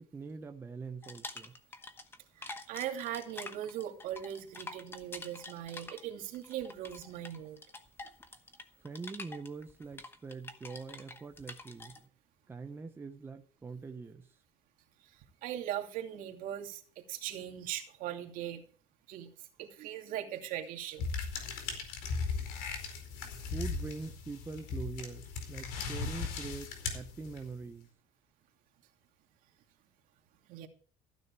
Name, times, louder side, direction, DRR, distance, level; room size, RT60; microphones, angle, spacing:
voice 1, 0.1-1.5 8.8-12.0 12.5-14.3 23.4-27.9, right 4 dB, 15° right, 6 dB, 0.8 m, -43 dB
sound 1, 1.0-2.2 2.4-12.0, left 3 dB, 15° left, 1.1 m, -47 dB
voice 2, 2.3-7.6 15.0-18.6 19.1-21.1 30.5-30.7, right 11 dB, 60° right, 4 dB, 2.6 m, -40 dB
sound 2, 21.0-27.6, left 4 dB, 75° left, 4.5 m, -38 dB
15.5 x 10.0 x 4.7 m, 0.43 s
cardioid pair, 155°, 16 cm